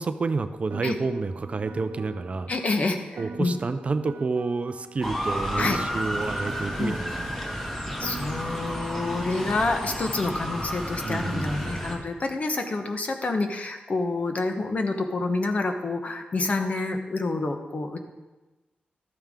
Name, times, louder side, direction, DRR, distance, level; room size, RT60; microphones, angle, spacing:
voice 1, 0.0-2.5 3.2-7.3 11.0-11.7, right 3 dB, 40° right, 10 dB, 0.5 m, -29 dB
Piano, 0.7-5.2 5.6-10.2, right 5 dB, 85° right, 0.6 m, -43 dB
voice 2, 2.5-3.6 5.6-5.8 6.8-7.0 8.0-18.0, left 3 dB, 45° left, 5 dB, 1.1 m, -28 dB
Motor vehicle (road) / Siren, 5.0-11.9, equal, 15° left, 1.9 m, -31 dB
13.0 x 8.9 x 3.7 m, 1.2 s
wide cardioid pair, 115°, 3 cm